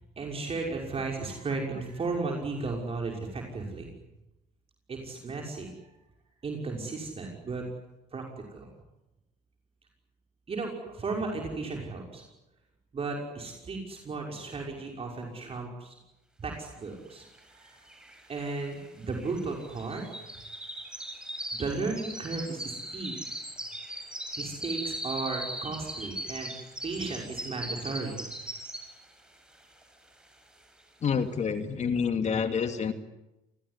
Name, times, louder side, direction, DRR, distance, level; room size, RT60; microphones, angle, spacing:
voice 1, 0.2-3.9 4.9-5.7 6.4-7.6 8.1-8.7 10.5-12.2 12.9-15.9 16.4-17.3 17.5-20.0 21.5-23.2 24.4-26.5 26.8-28.2, right 3 dB, 35° right, 1 dB, 6.0 m, -35 dB
sound 1, 17.4-17.5 17.7-29.1 29.5-29.8 30.3-30.4, right 1 dB, 5° right, 7.1 m, -39 dB
voice 2, 31.0-32.9, left 6 dB, 45° left, 8 dB, 2.5 m, -28 dB
28.0 x 20.5 x 9.9 m, 0.94 s
cardioid pair, 110°, 17 cm